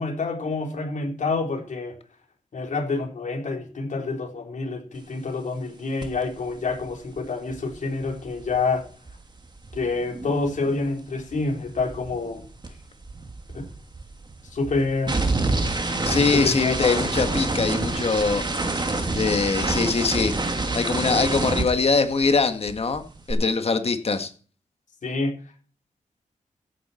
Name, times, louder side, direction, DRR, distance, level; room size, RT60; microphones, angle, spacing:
voice 1, 0.0-1.9 2.5-8.9 9.7-12.4 13.5-13.6 14.5-15.2 16.1-17.0 25.0-25.3, left 3 dB, 65° left, 4.2 m, -27 dB
sound 1, 6.0-6.2 6.5-10.9 11.1-22.4 22.7-23.3, right 2 dB, 35° right, 2.5 m, -28 dB
voice 2, 16.1-20.3 20.7-24.3, left 4 dB, 45° left, 1.8 m, -23 dB
15.0 x 9.4 x 4.5 m
wide cardioid pair, 115°, 14 cm